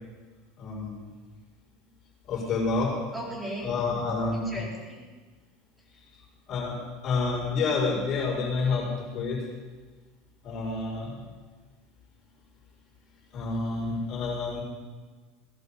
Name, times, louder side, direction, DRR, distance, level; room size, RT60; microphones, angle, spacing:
voice 1, 0.6-1.0 2.3-2.9 3.6-4.6 6.5-6.8 7.0-9.4 10.4-11.2 13.3-14.6, left 4 dB, 45° left, -3 dB, 5.5 m, -28 dB
voice 2, 3.1-3.7 4.3-5.1, right 1 dB, 10° right, -4 dB, 4.0 m, -37 dB
16.5 x 11.0 x 5.6 m, 1.4 s
hypercardioid pair, 80°, 0 cm